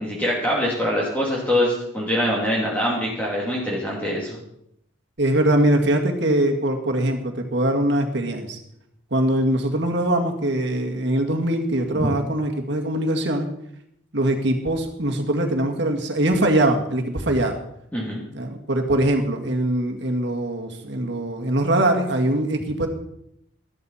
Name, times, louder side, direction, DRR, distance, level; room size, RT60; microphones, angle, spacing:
voice 1, 0.0-4.4 11.9-12.1 17.9-18.2, equal, 10° left, -5 dB, 2.5 m, -24 dB
voice 2, 5.2-8.6 9.1-13.5 14.1-17.6 18.3-22.9, right 1 dB, 60° right, 2 dB, 2.0 m, -22 dB
13.0 x 13.0 x 4.4 m, 0.75 s
head